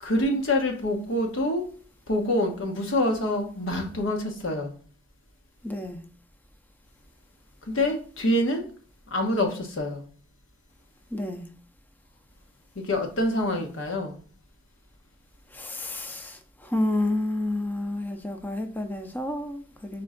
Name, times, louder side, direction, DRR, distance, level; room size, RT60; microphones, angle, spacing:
voice 1, 0.0-1.7 2.1-4.7 7.7-8.7 9.1-10.0 12.8-14.2, left 1 dB, 85° left, 1.1 m, -26 dB
voice 2, 5.6-6.0 11.1-11.5 15.5-20.0, left 1 dB, 10° left, 0.4 m, -30 dB
4.3 x 3.2 x 3.7 m
head